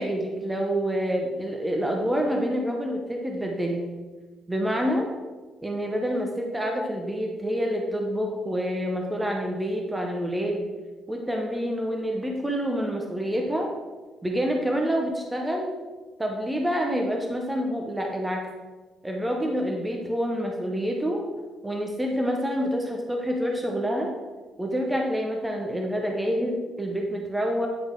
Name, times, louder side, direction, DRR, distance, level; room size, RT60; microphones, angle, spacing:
voice 1, 0.0-3.8 4.5-5.1 5.6-10.6 11.1-13.7 14.2-15.7 16.2-18.4 19.0-21.2 21.6-24.1 24.6-27.7, equal, 10° right, 1 dB, 0.9 m, -27 dB
8.9 x 3.5 x 3.7 m, 1.3 s
cardioid pair, 90°, 0 cm